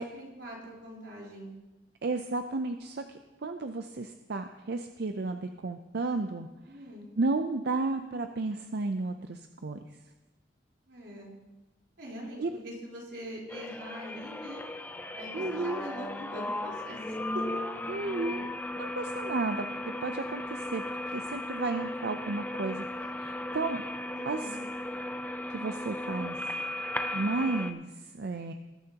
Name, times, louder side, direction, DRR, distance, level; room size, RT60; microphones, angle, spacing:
voice 1, 0.0-1.5 6.7-7.1 10.9-11.4 12.0-14.6 15.1-17.4 24.1-24.6, equal, 90° right, -4 dB, 3.9 m, -43 dB
voice 2, 2.0-6.5 7.2-9.8 12.4-12.6 15.3-15.8 17.9-18.5 18.7-19.7 20.0-20.8 21.1-22.9 23.2-23.8 24.3-24.6 25.5-26.4 27.1-28.5, right 3 dB, 65° right, 7 dB, 0.5 m, -33 dB
sound 1, 13.5-27.7, left 1 dB, 10° left, 0.6 m, -36 dB
20.5 x 10.5 x 2.9 m, 1.1 s
head